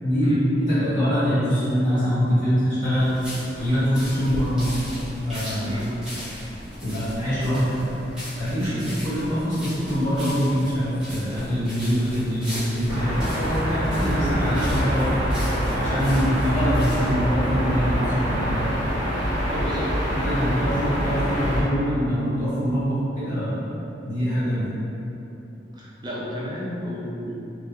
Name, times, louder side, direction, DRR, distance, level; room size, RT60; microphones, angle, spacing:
voice 1, 0.0-0.3 0.7-3.1 3.6-4.8 5.3-5.8 6.8-7.7 8.4-8.7 9.0-15.3 15.7-18.7 20.1-23.6 24.0-24.7, equal, 45° left, -14 dB, 1.5 m, -24 dB
sound 1, 2.9-17.1, equal, 5° right, 1.1 m, -37 dB
sound 2, 12.9-21.6, equal, 80° left, 1.2 m, -25 dB
voice 2, 19.4-20.0 25.7-27.4, equal, 25° right, -6 dB, 0.5 m, -32 dB
3.2 x 2.8 x 2.4 m, 3.0 s
head